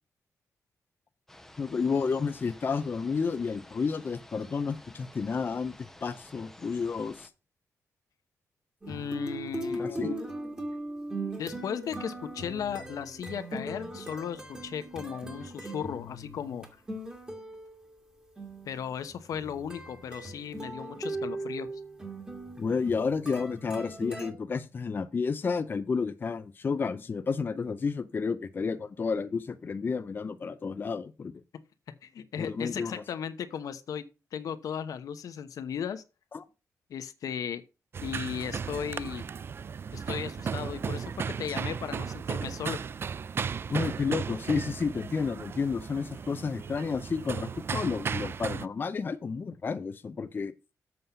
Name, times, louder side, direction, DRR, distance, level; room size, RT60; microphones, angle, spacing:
sound 1, 1.3-7.3, left 1 dB, 5° left, 0.8 m, -52 dB
voice 1, 1.6-7.3 9.7-10.2 22.6-31.3 32.4-33.0 36.3-36.4 43.7-50.5, left 5 dB, 35° left, 0.5 m, -31 dB
sound 2, 8.8-24.3, right 1 dB, 15° right, 1.7 m, -39 dB
voice 2, 8.9-9.8 10.1-10.2 11.4-16.7 18.7-21.7 32.0-34.1 34.3-36.0 36.9-37.6 38.0-39.2 39.9-42.8, left 8 dB, 75° left, 0.9 m, -36 dB
sound 3, 37.9-48.7, right 6 dB, 40° right, 0.3 m, -35 dB
7.8 x 5.4 x 5.5 m
wide cardioid pair, 125°, 6 cm